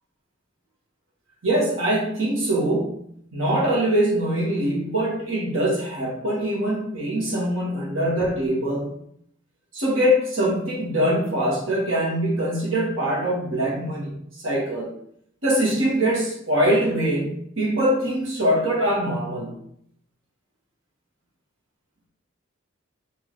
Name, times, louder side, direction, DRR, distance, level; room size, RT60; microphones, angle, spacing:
voice 1, 1.4-8.9 9.7-14.9 15.4-19.5, right 1 dB, 70° right, -3 dB, 1.4 m, -23 dB
4.6 x 2.8 x 3.1 m, 0.68 s
head